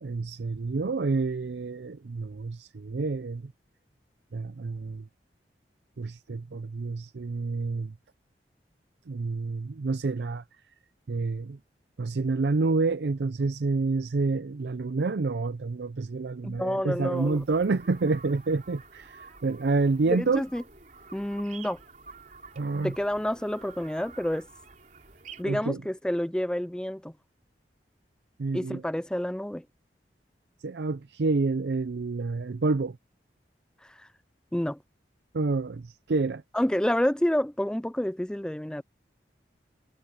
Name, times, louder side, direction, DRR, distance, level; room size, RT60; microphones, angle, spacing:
voice 1, 0.0-3.5 4.3-5.1 6.0-7.9 9.1-10.4 11.1-11.6 12.0-20.4 22.6-22.9 25.4-25.8 28.4-28.8 30.6-33.0 35.3-36.4, right 3 dB, 70° right, 0.5 m, -28 dB
voice 2, 16.4-17.4 20.1-20.6 21.1-21.8 22.8-24.5 25.4-27.1 28.5-29.6 34.0-34.1 34.5-34.8 36.5-38.8, equal, 5° left, 0.3 m, -29 dB
sound 1, 17.1-25.4, right 4 dB, 45° right, 4.2 m, -49 dB
head